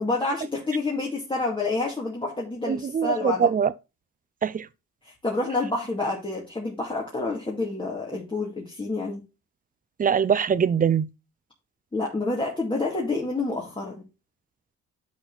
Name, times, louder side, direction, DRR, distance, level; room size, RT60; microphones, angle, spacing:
voice 1, 0.0-3.5 5.0-9.2 11.9-14.0, left 3 dB, 15° left, 2.4 m, -28 dB
voice 2, 2.7-3.7 4.4-4.7 10.0-11.1, right 7 dB, 30° right, 0.6 m, -22 dB
10.5 x 4.3 x 4.0 m
cardioid pair, 90°, 30 cm